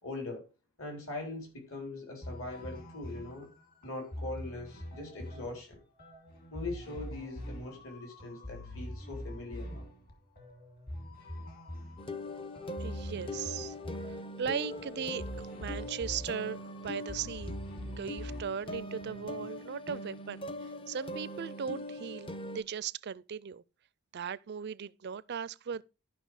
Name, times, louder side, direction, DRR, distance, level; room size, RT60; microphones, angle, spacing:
voice 1, 0.0-0.5 0.8-3.5 3.8-5.8 6.5-9.9, left 2 dB, 65° left, 4.0 m, -41 dB
sound 1, 2.2-19.5, equal, 40° left, 2.6 m, -44 dB
sound 2, 12.0-22.6, left 1 dB, 25° left, 0.5 m, -41 dB
voice 2, 12.8-13.7 14.1-17.6 17.9-20.4 20.9-23.6 24.1-25.8, right 7 dB, 50° right, 0.4 m, -38 dB
12.0 x 5.8 x 4.8 m
head